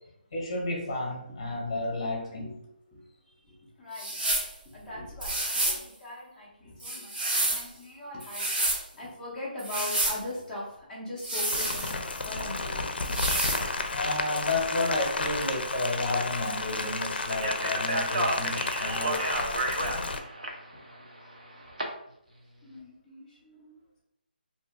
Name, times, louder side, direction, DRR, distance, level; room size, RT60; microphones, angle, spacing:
voice 1, 0.3-2.5 13.9-19.2, left 2 dB, 30° left, -2 dB, 0.7 m, -31 dB
voice 2, 2.9-4.1 4.6-8.5 8.9-12.0 12.2-12.8 18.6-18.7 19.8-19.9 20.7-21.7 22.6-23.8, left 1 dB, ahead, -10 dB, 0.4 m, -41 dB
sound 1, 3.9-4.5 5.2-5.8 6.8-7.7 8.2-8.8 9.6-10.2 11.2-12.2 13.0-13.6, right 1 dB, 65° right, 0.9 m, -29 dB
Rain, 11.5-20.2, left 3 dB, 75° left, 0.4 m, -32 dB
Speech, 17.3-21.8, right 2 dB, 50° right, 0.6 m, -32 dB
2.7 x 2.2 x 3.4 m, 0.77 s
hypercardioid pair, 180°, 6 cm